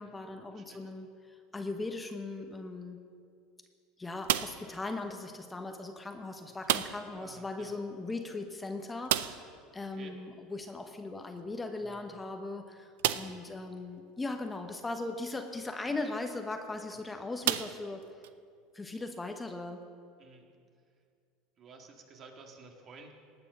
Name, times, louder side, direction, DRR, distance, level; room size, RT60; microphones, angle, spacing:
voice 1, 0.0-3.0 4.0-18.0 18.7-19.9, left 2 dB, 15° left, 5 dB, 1.1 m, -39 dB
voice 2, 0.5-0.8 7.1-7.7 9.9-10.2 11.8-12.0 16.9-17.0 20.2-20.4 21.6-23.1, right 4 dB, 45° right, 2 dB, 2.0 m, -52 dB
sound 1, 4.2-4.8 6.6-7.2 7.5-7.6 7.9-8.0 9.0-9.6 11.4-11.5 12.1-12.2 13.0-13.5 14.2-14.3 16.3-16.5 17.4-18.3, right 13 dB, 80° right, 0.4 m, -31 dB
18.5 x 6.7 x 6.2 m, 2.3 s
hypercardioid pair, 90°, 0 cm